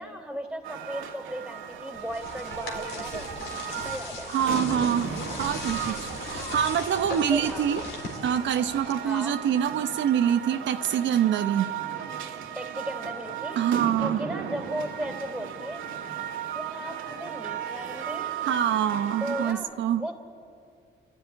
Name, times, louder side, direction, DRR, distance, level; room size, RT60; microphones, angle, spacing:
voice 1, 0.0-3.3 3.8-4.3 7.3-7.7 9.0-9.4 12.6-13.6 14.0-15.8 16.5-18.3 19.2-19.7 20.0-20.1, equal, 5° right, 5 dB, 3.5 m, -36 dB
sound 1, 0.6-19.5, right 8 dB, 85° right, 2.2 m, -36 dB
sound 2, 1.7-9.5, left 3 dB, 75° left, 4.0 m, -38 dB
voice 2, 4.3-7.8 8.2-11.7 13.6-14.2 18.4-20.0, right 9 dB, 70° right, 7 dB, 0.8 m, -25 dB
30.0 x 12.5 x 9.8 m, 2.4 s
cardioid pair, 90°, 20 cm